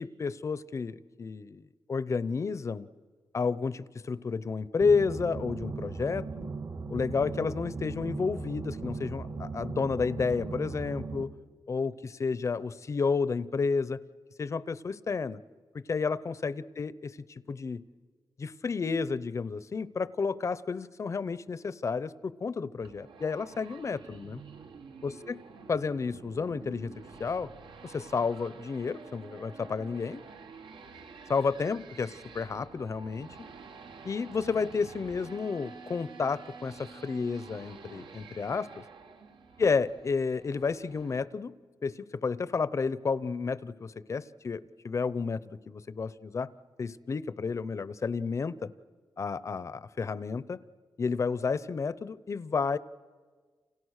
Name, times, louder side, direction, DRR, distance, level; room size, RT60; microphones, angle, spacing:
voice 1, 0.0-2.9 3.3-6.3 6.9-11.3 11.7-14.0 14.4-15.4 15.7-17.8 18.4-24.4 25.0-25.4 25.7-26.9 27.2-27.5 27.8-30.2 31.3-33.5 34.0-38.8 39.6-41.5 41.8-46.5 46.8-48.7 49.2-50.6 51.0-52.8, left 5 dB, 35° left, 17 dB, 0.7 m, -31 dB
sound 1, 4.8-11.2, right 4 dB, 40° right, 1.6 m, -38 dB
sound 2, 22.8-41.2, right 5 dB, 75° right, 1.9 m, -49 dB
29.5 x 28.0 x 6.5 m, 1.5 s
wide cardioid pair, 155°, 8 cm